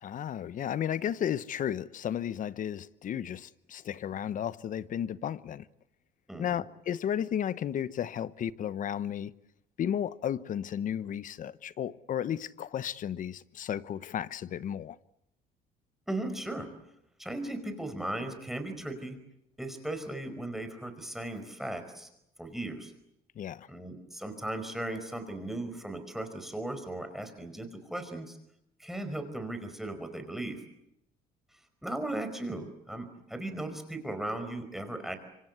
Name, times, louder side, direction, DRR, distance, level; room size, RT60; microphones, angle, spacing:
voice 1, 0.0-5.7 6.4-9.3 9.8-15.0 23.3-23.7, left 9 dB, 50° left, 1.0 m, -33 dB
voice 2, 6.3-6.6 16.1-16.7 17.2-19.2 19.6-22.1 22.4-22.9 23.7-28.4 28.8-30.6 31.8-35.2, right 1 dB, ahead, 4.9 m, -37 dB
26.5 x 25.5 x 8.2 m
cardioid pair, 110°, 17 cm